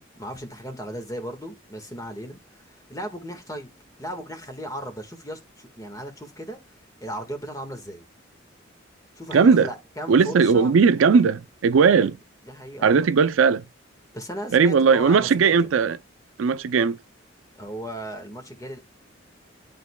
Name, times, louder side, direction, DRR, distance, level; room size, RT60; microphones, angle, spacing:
voice 1, 0.0-3.7 4.0-6.6 7.0-8.0 9.2-11.0 12.0-12.1 12.5-13.1 14.1-15.5 17.6-18.8, equal, 15° left, 1.5 m, -36 dB
voice 2, 9.3-9.7 10.1-12.1 12.8-13.6 14.5-16.0 16.4-17.0, right 5 dB, 85° right, 0.4 m, -18 dB
11.5 x 3.9 x 2.2 m
head